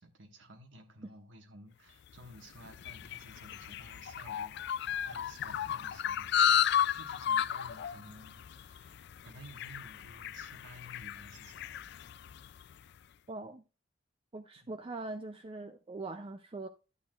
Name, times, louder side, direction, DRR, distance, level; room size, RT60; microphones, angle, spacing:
voice 1, 0.0-6.7 6.9-11.7 14.6-14.7, right 1 dB, 75° right, 1.5 m, -54 dB
sound 1, 2.1-12.7, left 9 dB, 60° left, 0.4 m, -33 dB
voice 2, 13.3-13.6 14.3-16.7, right 2 dB, 30° right, 0.4 m, -42 dB
11.5 x 8.3 x 2.4 m
head